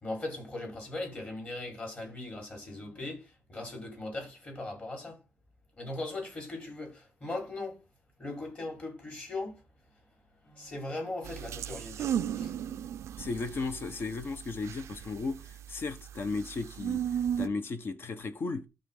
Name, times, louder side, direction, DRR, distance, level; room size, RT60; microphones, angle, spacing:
voice 1, 0.0-5.2 5.8-7.8 8.2-9.6 10.4-12.5, left 2 dB, 30° left, 4.7 m, -39 dB
sound 1, 11.2-17.5, right 9 dB, 80° right, 0.4 m, -36 dB
voice 2, 13.2-17.0 17.4-18.7, left 3 dB, 55° left, 1.1 m, -35 dB
12.5 x 4.2 x 3.9 m
cardioid pair, 115°, 5 cm